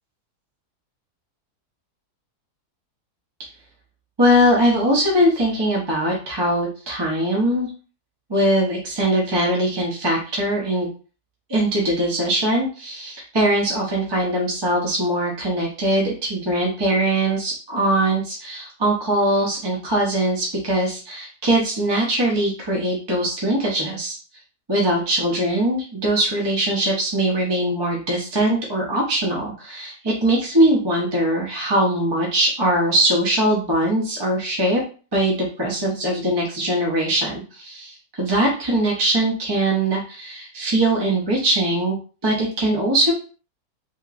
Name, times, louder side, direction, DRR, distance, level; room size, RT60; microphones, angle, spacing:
voice 1, 4.2-7.7 8.3-10.9 11.5-24.2 24.7-34.8 35.1-42.0 42.2-43.1, right 1 dB, 25° right, -2 dB, 0.5 m, -21 dB
2.9 x 2.9 x 2.5 m, 0.36 s
omnidirectional pair, 1.7 m